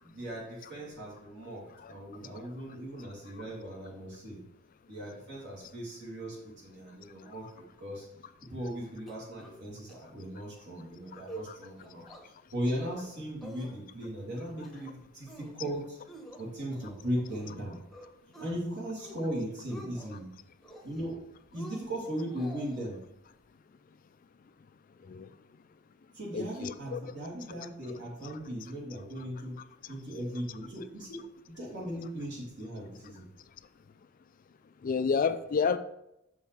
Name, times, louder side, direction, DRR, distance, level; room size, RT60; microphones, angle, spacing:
voice 1, 0.0-1.6 1.9-4.4 4.9-8.1 8.4-12.0 12.5-16.0 16.4-17.8 18.4-20.3 20.8-21.2 21.5-23.0 26.1-29.5 29.9-31.2 31.6-33.3, equal, 60° right, -3 dB, 2.7 m, -38 dB
sound 1, 9.1-9.6 9.9-10.0 10.3-10.6 11.0-11.5 11.8-12.2 12.6-13.1 13.4-14.1 14.5-14.9 15.3-15.7 16.1-17.6 17.9-18.5 18.9-19.3 19.5-20.2 20.6-21.2 21.5-22.8, right 1 dB, ahead, 1.1 m, -48 dB
voice 2, 26.3-27.0 34.8-35.8, left 5 dB, 45° left, 11 dB, 0.4 m, -29 dB
6.7 x 5.5 x 4.6 m, 0.83 s
head